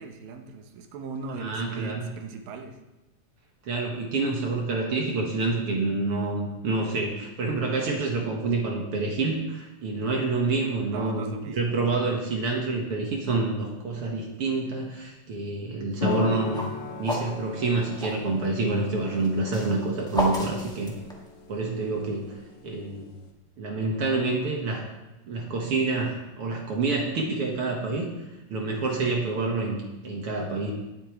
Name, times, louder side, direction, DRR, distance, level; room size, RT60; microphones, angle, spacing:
voice 1, 0.0-2.8 10.9-12.4, right 5 dB, 80° right, 5 dB, 2.7 m, -38 dB
voice 2, 1.4-2.1 3.7-16.7 17.0-20.9 21.5-22.4 22.6-23.1 23.6-24.9 25.3-28.1 28.5-30.7, right 3 dB, 50° right, 0 dB, 1.9 m, -27 dB
sound 1, 16.0-23.3, left 4 dB, 65° left, 2.4 m, -37 dB
sound 2, 16.0-18.2 19.1-21.5, left 1 dB, 5° left, 0.5 m, -32 dB
17.5 x 8.7 x 3.2 m, 1.0 s
omnidirectional pair, 3.9 m